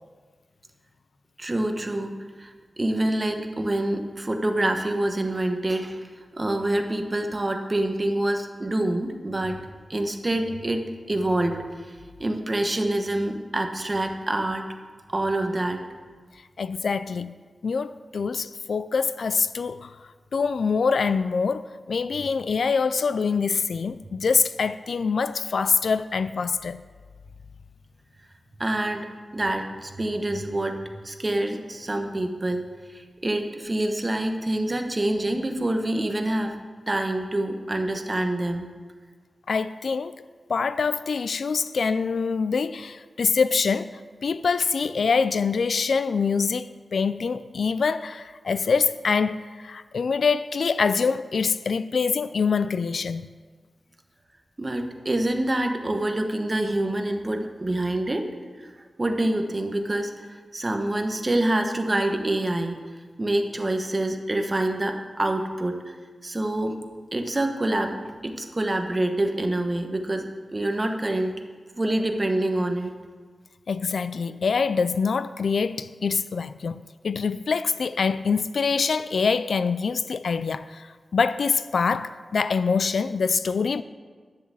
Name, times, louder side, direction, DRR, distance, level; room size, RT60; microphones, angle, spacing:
voice 1, 1.4-2.1 2.4-6.0 6.3-9.6 9.9-10.8 11.1-14.6 15.1-15.8 28.6-29.1 29.3-30.7 31.0-32.6 32.9-36.5 36.9-38.7 54.6-58.3 59.0-60.1 60.5-62.8 63.2-65.9 66.2-66.8 67.1-71.4 71.8-72.9, right 1 dB, 25° right, 1.0 m, -26 dB
voice 2, 16.6-17.3 17.6-19.9 20.3-26.8 39.5-40.1 40.5-53.3 73.7-80.9 81.1-83.8, left 5 dB, 65° left, 0.3 m, -25 dB
10.5 x 7.0 x 7.5 m
wide cardioid pair, 150°, 0 cm